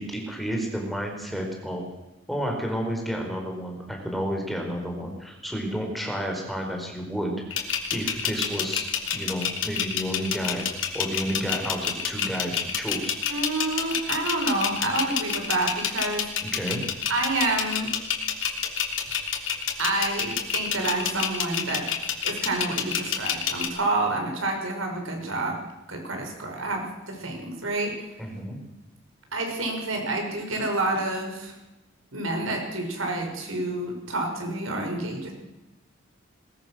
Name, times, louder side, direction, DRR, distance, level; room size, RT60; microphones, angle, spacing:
voice 1, 0.0-1.9 2.3-7.6 7.9-10.6 10.9-13.1 16.4-16.8 28.2-28.6, equal, ahead, 1 dB, 4.7 m, -31 dB
sound 1, 7.5-23.7, left 8 dB, 70° left, 3.3 m, -28 dB
voice 2, 13.3-16.3 17.1-17.9 19.8-21.9 22.2-25.6 25.9-28.0 29.3-31.5 32.1-35.3, right 2 dB, 85° right, 3 dB, 5.8 m, -28 dB
21.0 x 21.0 x 6.5 m, 0.97 s
head